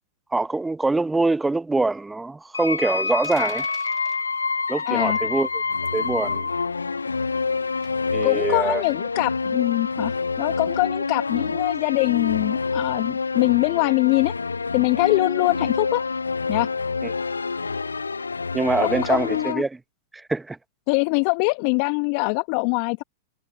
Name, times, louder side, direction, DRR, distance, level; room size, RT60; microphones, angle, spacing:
voice 1, 0.3-3.7 4.7-5.5 5.9-6.5 8.1-8.8 17.0-17.1 18.5-19.8 20.1-20.6, right 3 dB, 10° right, 1.4 m, -24 dB
sound 1, 2.5-19.5, left 4 dB, 85° left, 0.5 m, -27 dB
sound 2, 3.2-4.2 5.8-6.1 7.8-8.2, right 20 dB, 40° right, 2.1 m, -45 dB
voice 2, 4.9-5.2 8.2-14.3 14.7-16.0 16.5-16.7 18.8-19.6 20.9-23.0, left 34 dB, 45° left, 1.5 m, -23 dB
figure-of-eight pair, 100°, 0 cm